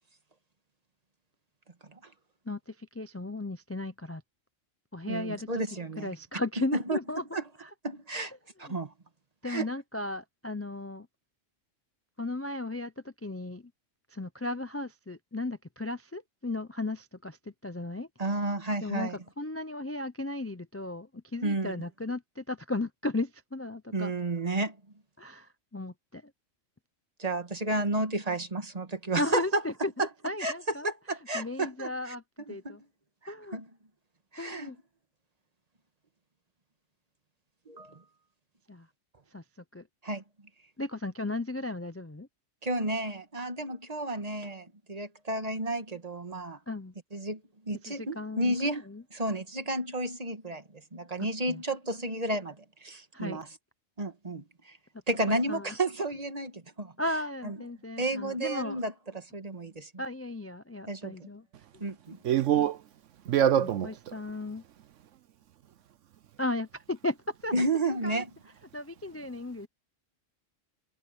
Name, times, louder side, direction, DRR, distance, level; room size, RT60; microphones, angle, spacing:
voice 1, 2.5-4.2 4.9-5.6 6.0-7.2 7.6-7.7 8.6-8.7 9.4-11.1 12.2-13.6 14.1-18.1 18.8-24.1 25.2-26.3 29.2-30.9 31.3-32.2 32.5-32.8 33.3-33.6 34.4-34.8 38.7-38.9 39.3-39.4 39.7-39.9 40.8-42.3 46.7-46.9 47.9-49.0 51.5-51.6 53.1-53.4 55.3-55.8 57.0-58.8 60.0-61.5 63.6-64.6 66.4-67.5 67.8-68.2 68.7-69.7, left 2 dB, 20° left, 0.3 m, -35 dB
voice 2, 5.1-6.1 6.9-7.0 7.3-7.4 7.8-8.3 8.6-8.9 9.4-9.7 18.2-19.2 21.4-21.8 23.9-24.8 27.2-29.6 30.0-30.1 30.4-30.5 30.8-32.2 32.5-32.8 33.5-33.7 34.3-34.7 37.7-38.0 40.0-40.2 42.6-46.6 47.1-47.4 47.7-48.8 49.1-53.5 54.0-54.8 55.1-56.9 57.4-57.6 58.0-59.9 60.9-61.1 61.8-62.2 67.5-68.3, right 2 dB, 30° right, 1.7 m, -32 dB
voice 3, 62.2-62.8 63.3-63.9, right 10 dB, 70° right, 1.0 m, -24 dB
omnidirectional pair, 1.3 m